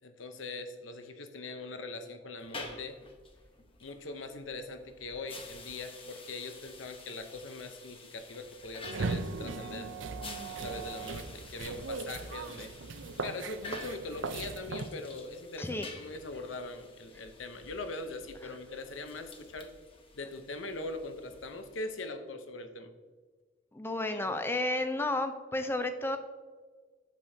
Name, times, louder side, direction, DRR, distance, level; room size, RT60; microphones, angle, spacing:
voice 1, 0.0-3.0 3.8-9.9 10.5-12.7 13.2-19.7 20.2-22.9 24.1-24.4, left 2 dB, 90° left, 8 dB, 0.8 m, -41 dB
sound 1, 2.4-22.0, left 3 dB, 30° left, 0.9 m, -50 dB
sound 2, 8.8-14.8, right 4 dB, 75° right, 0.5 m, -38 dB
voice 2, 15.6-15.9 23.7-26.2, left 2 dB, 10° left, 8 dB, 0.5 m, -32 dB
9.1 x 6.7 x 2.8 m, 1.5 s
head